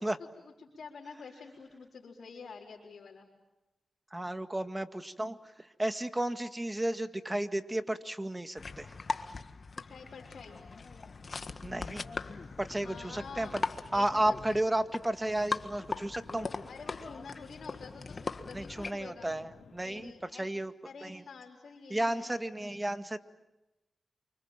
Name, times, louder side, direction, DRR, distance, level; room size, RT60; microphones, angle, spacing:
voice 1, 0.2-3.3 9.9-10.6 12.8-13.5 13.9-14.2 14.5-14.6 16.7-19.3 19.8-20.5 20.8-22.4, left 5 dB, 70° left, -3 dB, 4.2 m, -48 dB
voice 2, 4.1-8.9 11.6-12.0 12.6-13.7 13.9-16.5 18.5-20.7 21.0-21.2 21.9-23.2, right 1 dB, 15° right, 9 dB, 1.8 m, -33 dB
sound 1, 8.6-18.9, left 4 dB, 50° left, 1.6 m, -40 dB
sound 2, 9.9-20.1, left 5 dB, 90° left, 3.2 m, -59 dB
28.5 x 25.5 x 7.5 m, 1.0 s
cardioid pair, 60°, 0 cm